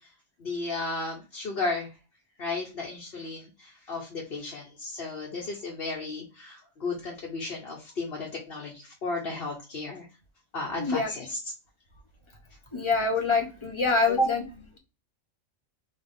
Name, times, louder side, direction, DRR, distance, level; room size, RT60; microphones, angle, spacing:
voice 1, 0.4-1.9 2.4-10.1 10.5-11.5, left 3 dB, 50° left, -2 dB, 1.2 m, -34 dB
voice 2, 10.8-11.1 12.7-14.8, left 3 dB, 25° left, 1 dB, 0.7 m, -25 dB
4.0 x 3.1 x 3.5 m, 0.30 s
omnidirectional pair, 1.4 m